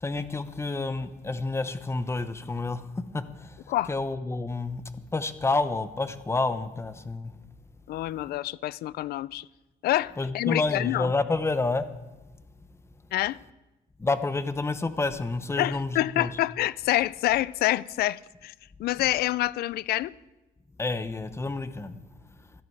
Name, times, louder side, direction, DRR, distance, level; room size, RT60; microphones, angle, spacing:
voice 1, 0.0-2.8 3.1-3.6 3.9-4.8 5.1-7.3 10.2-11.9 14.0-16.3 20.8-22.0, left 3 dB, 15° left, 0.9 m, -29 dB
voice 2, 7.9-9.5 9.8-11.1 13.1-13.4 15.6-18.5 18.8-20.1, left 15 dB, 65° left, 0.5 m, -27 dB
16.5 x 13.0 x 4.7 m
cardioid pair, 110°, 17 cm